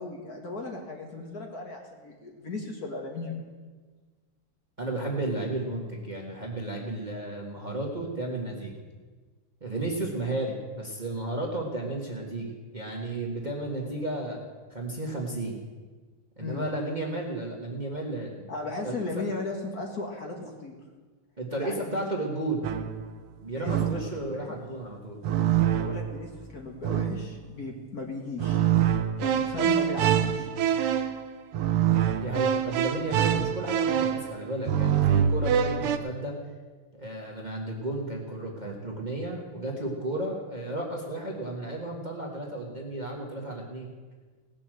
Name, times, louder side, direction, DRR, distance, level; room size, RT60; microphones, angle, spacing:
voice 1, 0.0-3.4 16.4-16.7 18.5-20.8 21.6-22.1 23.5-24.4 25.7-28.7 29.2-30.5, left 3 dB, 45° left, 1 dB, 1.9 m, -36 dB
voice 2, 4.8-8.7 9.6-14.4 14.7-15.6 16.4-18.5 18.8-19.2 21.4-22.6 23.4-25.2 32.1-36.3 36.9-43.9, right 2 dB, 20° right, -1 dB, 1.6 m, -33 dB
sound 1, 22.6-23.1 23.7-24.2 25.2-26.2 26.8-27.4 28.4-36.0, right 9 dB, 90° right, 1.8 m, -25 dB
18.0 x 7.0 x 7.6 m, 1.4 s
omnidirectional pair, 2.4 m